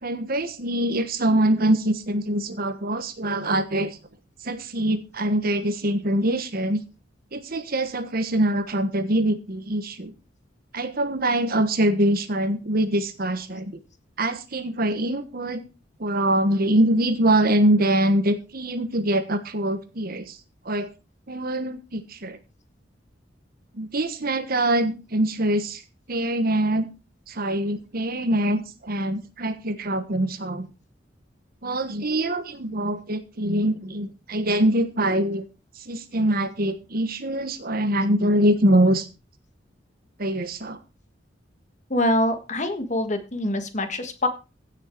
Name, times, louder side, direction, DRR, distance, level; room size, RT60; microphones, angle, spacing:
voice 1, 0.0-4.0 4.4-6.8 7.3-10.1 10.7-13.8 14.2-15.6 16.0-20.4 20.6-20.9 21.3-22.4 23.7-25.8 26.1-26.9 27.3-30.7 31.6-35.4 35.8-39.1 40.2-40.8, right 1 dB, 55° right, 11 dB, 1.3 m, -24 dB
voice 2, 41.9-44.3, left 1 dB, 40° left, 8 dB, 1.6 m, -24 dB
16.0 x 6.5 x 4.6 m, 0.31 s
head